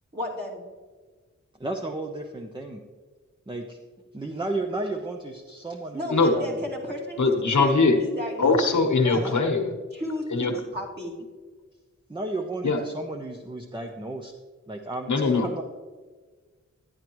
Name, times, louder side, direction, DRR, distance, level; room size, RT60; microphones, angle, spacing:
voice 1, 0.1-0.7 5.9-7.7 8.0-8.5 9.0-9.2 9.9-11.1, left 1 dB, 35° right, -4 dB, 2.5 m, -34 dB
voice 2, 1.6-2.8 3.5-3.8 4.1-6.6 9.1-9.4 12.1-14.3 14.7-15.6, right 2 dB, 15° right, 3 dB, 0.7 m, -33 dB
voice 3, 7.2-8.0 8.4-9.7 10.3-10.6 12.6-12.8 15.1-15.6, left 3 dB, 80° left, 4 dB, 1.2 m, -21 dB
11.5 x 10.5 x 3.1 m, 1.4 s
wide cardioid pair, 85°, 29 cm